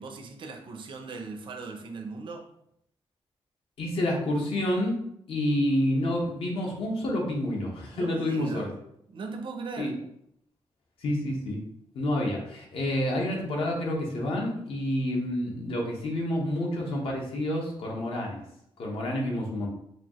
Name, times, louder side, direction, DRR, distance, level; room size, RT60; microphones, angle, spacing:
voice 1, 0.0-2.5 8.0-8.7 9.1-9.9, right 4 dB, 55° right, 0.5 m, -38 dB
voice 2, 3.8-5.0 5.3-8.7 9.8-9.9 11.0-11.6 11.9-18.4 18.8-19.7, left 1 dB, 65° left, 1.0 m, -28 dB
4.8 x 2.4 x 3.0 m
wide cardioid pair, 175°, 10 cm